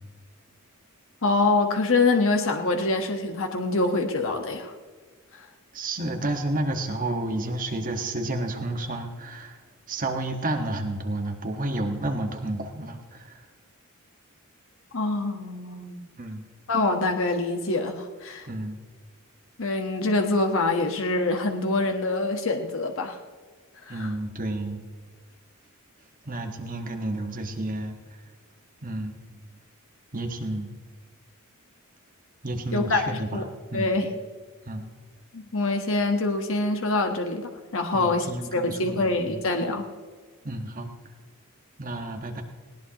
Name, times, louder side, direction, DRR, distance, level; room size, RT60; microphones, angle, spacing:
voice 1, 1.2-4.7 5.3-5.5 14.9-16.0 16.7-18.5 19.6-23.2 23.9-24.1 32.7-33.5 33.7-34.1 35.3-39.8, left 2 dB, 65° left, 4 dB, 1.2 m, -25 dB
voice 2, 5.7-9.6 9.9-13.4 16.2-16.4 18.5-18.8 23.9-24.8 26.2-28.0 28.8-29.4 30.1-30.7 32.4-33.9 34.6-34.9 37.9-39.4 40.4-40.9 41.8-42.4, right 1 dB, 40° right, 4 dB, 1.5 m, -31 dB
19.0 x 18.5 x 3.0 m, 1.5 s
head